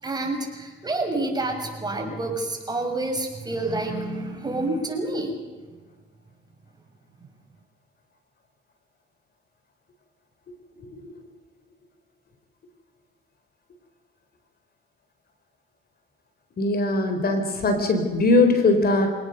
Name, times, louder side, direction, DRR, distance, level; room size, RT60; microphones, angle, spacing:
voice 1, 0.0-5.4, right 2 dB, 20° right, 2 dB, 6.2 m, -28 dB
voice 2, 16.6-19.1, left 2 dB, 50° left, 6 dB, 4.4 m, -20 dB
27.0 x 18.5 x 6.8 m, 1.4 s
cardioid pair, 90°, 20 cm